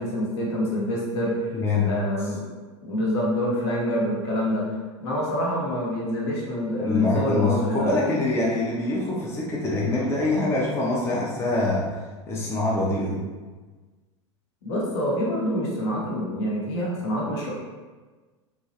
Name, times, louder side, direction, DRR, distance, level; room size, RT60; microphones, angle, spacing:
voice 1, 0.0-1.5 1.8-2.4 2.8-4.7 5.0-7.9 14.6-17.5, left 1 dB, 60° left, -4 dB, 0.9 m, -26 dB
voice 2, 1.5-1.9 6.8-11.9 12.3-13.2, left 2 dB, 15° left, -5 dB, 0.5 m, -24 dB
2.9 x 2.3 x 2.8 m, 1.3 s
figure-of-eight pair, 85°, 16 cm